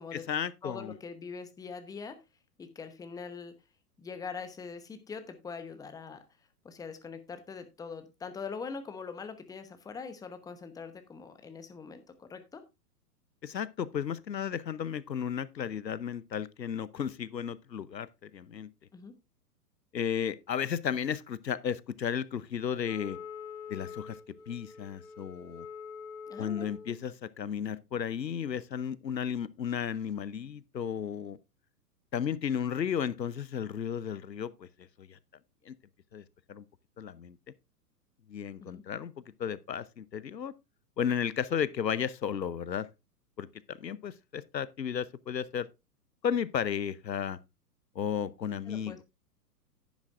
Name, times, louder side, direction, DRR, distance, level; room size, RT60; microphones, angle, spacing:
voice 1, 0.1-0.9 13.4-18.7 19.9-23.2 23.7-24.2 24.5-25.7 26.4-31.4 32.1-35.2 35.6-35.7 36.1-36.6 37.0-37.4 38.3-40.5 41.0-42.9 43.4-45.7 46.2-47.4 47.9-49.0, left 8 dB, 85° left, 0.8 m, -34 dB
voice 2, 0.6-2.2 2.6-3.5 4.0-6.2 6.6-12.6 18.9-19.1 26.3-26.7 38.6-38.8 48.7-49.0, left 5 dB, 5° left, 0.9 m, -42 dB
Wind instrument woodwind instrument, 22.8-27.0, left 6 dB, 65° left, 1.5 m, -45 dB
10.5 x 10.5 x 2.5 m
figure-of-eight pair, 115°, 49 cm